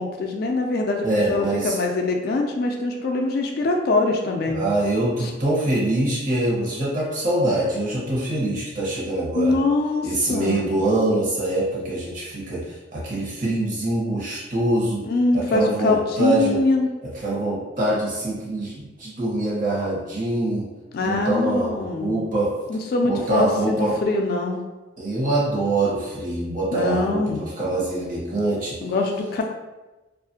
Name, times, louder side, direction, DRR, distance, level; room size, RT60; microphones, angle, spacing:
voice 1, 0.0-4.6 5.2-5.3 9.4-10.7 15.0-16.9 20.9-22.1 22.7-24.6 26.7-27.4 28.8-29.4, left 2 dB, 55° left, 2 dB, 0.3 m, -23 dB
voice 2, 1.0-1.8 4.5-9.6 10.0-15.0 15.3-16.6 17.0-20.7 21.0-22.5 23.0-24.0 25.0-28.8, right 1 dB, 50° right, -6 dB, 1.0 m, -24 dB
2.7 x 2.4 x 2.7 m, 1.1 s
head